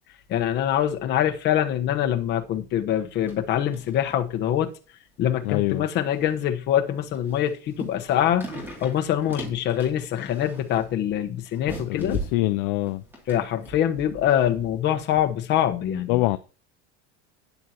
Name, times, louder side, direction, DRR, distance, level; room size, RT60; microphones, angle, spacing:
voice 1, 0.3-4.7 5.2-8.5 8.8-12.2 13.3-16.2, left 10 dB, 30° left, 1.0 m, -24 dB
sound 1, 3.1-3.5 3.7-4.2 4.6-4.7 5.4-5.5 6.1-6.5 7.0-14.8 15.1-15.2, equal, 5° right, 2.5 m, -39 dB
voice 2, 5.4-5.9 11.9-13.0 16.1-16.4, left 19 dB, 45° left, 0.4 m, -24 dB
12.0 x 9.4 x 2.8 m
cardioid pair, 175°, 35 cm